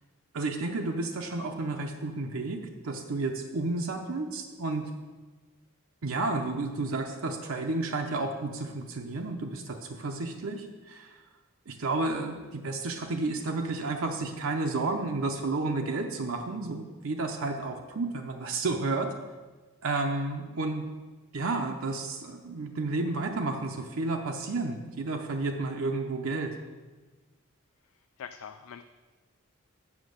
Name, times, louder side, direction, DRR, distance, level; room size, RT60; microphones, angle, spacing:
voice 1, 0.3-4.8 6.0-11.2 11.7-19.1 19.8-20.8 21.3-26.5, right 3 dB, 80° right, 3 dB, 0.7 m, -31 dB
voice 2, 28.2-28.8, left 7 dB, 90° left, 8 dB, 0.4 m, -43 dB
7.3 x 6.1 x 6.5 m, 1.3 s
head